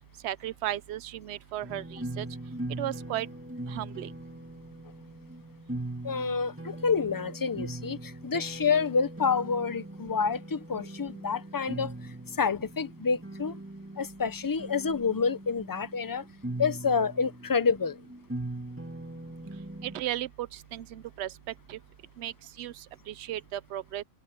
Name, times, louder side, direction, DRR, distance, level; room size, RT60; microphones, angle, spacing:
voice 1, 0.2-2.3 2.8-3.3 3.7-4.1 19.8-21.3 21.7-21.8 22.2-24.0, right 13 dB, 60° right, 0.9 m, -35 dB
sound 1, 1.6-20.0, right 1 dB, 10° right, 2.3 m, -40 dB
voice 2, 6.0-11.9 12.4-13.6 14.0-16.2 16.6-18.0, left 5 dB, 30° left, 0.4 m, -28 dB
omnidirectional pair, 1.3 m